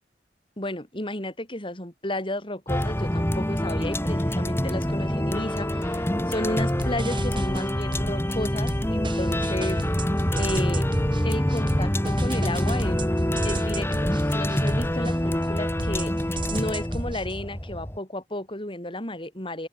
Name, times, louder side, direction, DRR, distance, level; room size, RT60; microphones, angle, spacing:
voice 1, 0.6-9.8 10.3-10.9 11.2-13.0 13.4-16.1 16.5-19.7, left 1 dB, 30° left, 7.7 m, -32 dB
sound 1, 2.7-18.0, equal, 15° left, 2.6 m, -26 dB
sound 2, 6.8-8.3 8.7-15.5 15.8-17.3, right 1 dB, 30° right, 6.3 m, -34 dB
open air
head